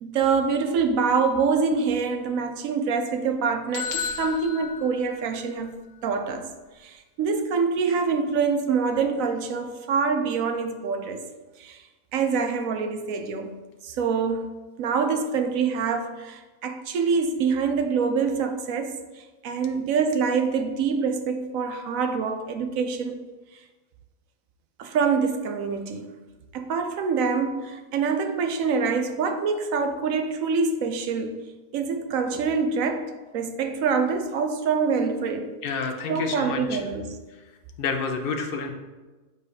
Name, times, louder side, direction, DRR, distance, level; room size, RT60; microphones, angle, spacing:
voice 1, 0.0-5.8 6.0-6.5 6.8-11.2 11.6-11.8 12.1-13.5 13.8-14.5 14.8-23.2 24.8-26.1 26.5-31.4 31.7-35.5 36.1-37.2, right 5 dB, 65° right, 7 dB, 0.9 m, -25 dB
sound 1, 3.7-5.7, left 6 dB, 80° left, 1.3 m, -33 dB
voice 2, 35.6-36.8 37.4-37.5 37.8-38.7, left 4 dB, 60° left, 4 dB, 0.6 m, -29 dB
8.1 x 4.9 x 2.7 m, 1.2 s
omnidirectional pair, 1.7 m